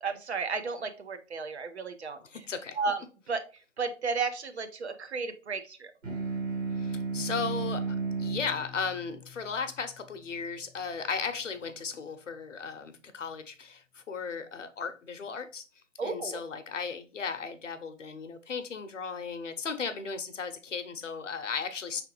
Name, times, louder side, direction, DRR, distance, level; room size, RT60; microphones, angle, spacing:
voice 1, 0.0-2.2 2.8-3.4 3.8-5.9 16.0-16.4, right 4 dB, 55° right, 0.8 m, -33 dB
voice 2, 2.3-2.8 6.8-15.6 16.0-22.0, left 5 dB, 70° left, 0.9 m, -36 dB
sound 1, 6.0-10.9, right 4 dB, 85° right, 2.0 m, -35 dB
4.7 x 3.3 x 3.0 m
hypercardioid pair, 160°, 39 cm